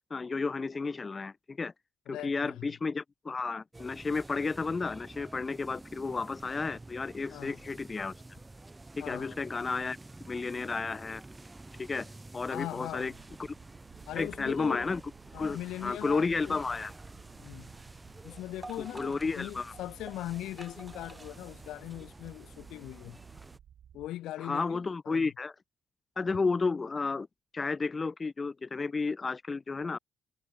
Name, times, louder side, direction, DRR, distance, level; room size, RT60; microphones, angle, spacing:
voice 1, 0.1-1.7 2.1-8.1 9.0-10.0 10.3-11.2 11.8-13.1 13.4-13.5 14.1-15.0 15.4-16.9 18.8-19.7 24.4-25.5 26.2-27.3 27.5-30.0, left 4 dB, 30° left, 1.0 m, -32 dB
voice 2, 2.1-2.7 7.3-7.6 9.0-9.4 12.5-13.1 14.1-14.9 15.3-16.6 17.4-17.7 18.2-23.2 23.9-25.3, left 14 dB, 85° left, 2.7 m, -40 dB
sound 1, 3.7-23.6, right 2 dB, 15° right, 6.9 m, -49 dB
sound 2, 13.0-24.1, right 9 dB, 60° right, 4.3 m, -55 dB
cardioid pair, 90°, 0 cm